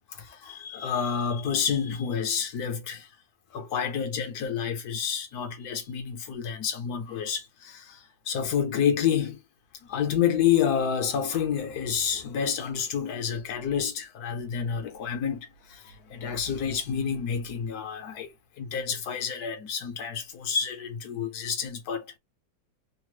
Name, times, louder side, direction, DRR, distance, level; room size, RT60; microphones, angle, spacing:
voice 1, 0.1-3.1 3.5-9.4 9.8-22.2, left 7 dB, 70° left, 1.3 m, -29 dB
3.4 x 2.1 x 3.0 m
omnidirectional pair, 1.8 m